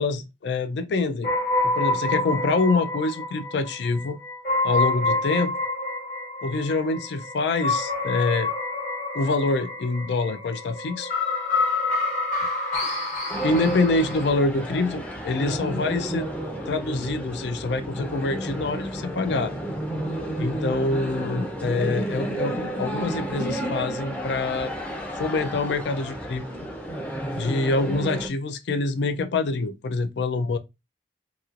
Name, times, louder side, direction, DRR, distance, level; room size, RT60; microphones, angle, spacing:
voice 1, 0.0-1.3 1.6-4.2 4.6-5.5 6.4-8.5 9.1-11.1 13.0-13.1 13.4-16.3 16.7-19.5 20.4-24.7 25.2-26.4 27.3-30.6, left 3 dB, 65° left, 0.4 m, -25 dB
sound 1, 1.2-14.3, left 2 dB, 40° left, 1.0 m, -27 dB
sound 2, 13.3-28.3, right 1 dB, 10° left, 0.5 m, -31 dB
3.0 x 2.8 x 2.4 m
head